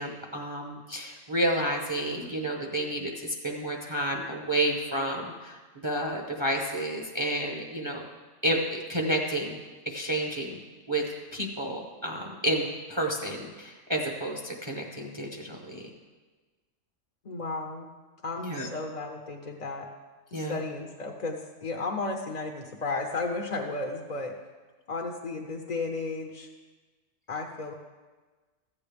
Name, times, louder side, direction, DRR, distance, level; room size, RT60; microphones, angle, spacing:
voice 1, 0.0-5.6 5.8-8.1 8.4-9.6 9.9-10.6 10.9-11.1 11.3-15.9 18.4-18.7 20.3-20.6, right 1 dB, 25° right, 1 dB, 0.9 m, -30 dB
voice 2, 17.2-17.9 18.2-19.9 20.3-24.3 24.9-26.5 27.3-27.7, left 3 dB, 40° left, 1 dB, 0.7 m, -34 dB
14.5 x 8.5 x 3.4 m, 1.3 s
omnidirectional pair, 1.3 m